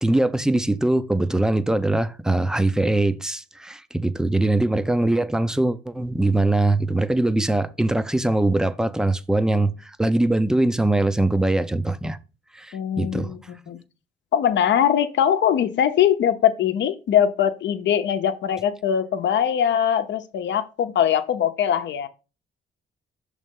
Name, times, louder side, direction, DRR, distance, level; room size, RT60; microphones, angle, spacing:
voice 1, 0.0-12.2 12.5-13.3, right 2 dB, 5° right, 0.6 m, -22 dB
voice 2, 12.7-13.8 14.3-22.1, left 9 dB, 65° left, 0.8 m, -21 dB
6.3 x 3.3 x 5.4 m
cardioid pair, 90°, 20 cm